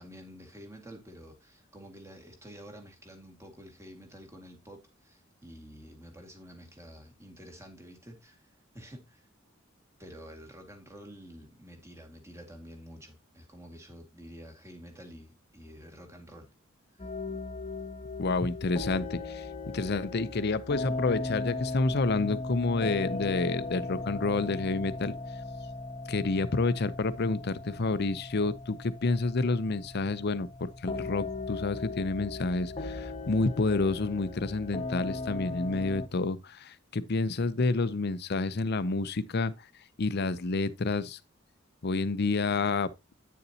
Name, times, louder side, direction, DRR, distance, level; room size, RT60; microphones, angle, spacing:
voice 1, 0.0-8.5 8.7-9.3 10.0-16.5 16.9-17.1, equal, 15° right, 1.9 m, -49 dB
sound 1, 17.0-36.1, left 3 dB, 30° left, 1.1 m, -37 dB
voice 2, 18.2-19.5 19.7-25.1 26.1-39.5 40.0-41.2 41.8-42.9, left 3 dB, 55° left, 0.6 m, -29 dB
9.4 x 6.8 x 2.8 m
head